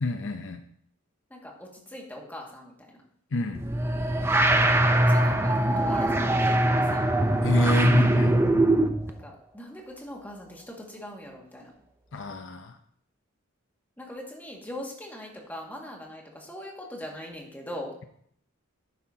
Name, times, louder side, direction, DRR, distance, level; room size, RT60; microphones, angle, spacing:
voice 1, 0.0-0.6 3.3-3.6 7.4-8.4 12.1-12.8, left 2 dB, 60° left, 7 dB, 0.7 m, -29 dB
voice 2, 1.3-3.0 4.2-7.1 9.1-11.7 14.0-17.9, left 1 dB, 10° left, -1 dB, 2.0 m, -41 dB
sound 1, 3.5-9.1, right 1 dB, 10° right, 0.6 m, -22 dB
11.5 x 9.7 x 2.8 m, 0.66 s
head